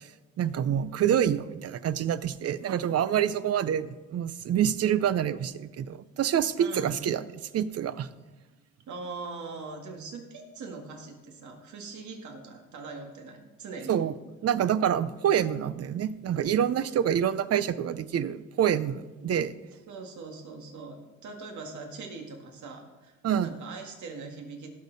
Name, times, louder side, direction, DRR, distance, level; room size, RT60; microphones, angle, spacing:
voice 1, 0.4-7.2 7.5-8.1 13.9-14.1 14.4-19.5 23.2-23.5, right 9 dB, 55° right, 15 dB, 0.6 m, -27 dB
voice 2, 6.6-7.0 8.9-14.0 19.9-24.7, right 4 dB, 70° right, 3 dB, 2.0 m, -41 dB
17.0 x 6.5 x 4.0 m, 1.2 s
cardioid pair, 90°, 30 cm